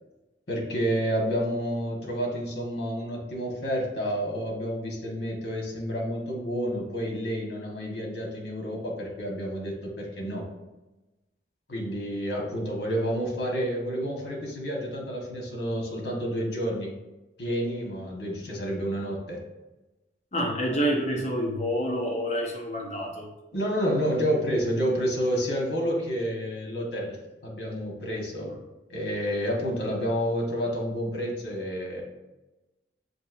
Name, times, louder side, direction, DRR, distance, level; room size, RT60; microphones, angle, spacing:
voice 1, 0.5-10.4 11.7-16.9 17.4-19.4 23.5-27.2 27.4-28.5 28.9-32.0, equal, 75° left, -1 dB, 1.2 m, -29 dB
voice 2, 20.3-23.3 28.4-28.6, equal, 40° left, 0 dB, 0.7 m, -28 dB
6.1 x 2.8 x 2.5 m, 1.0 s
head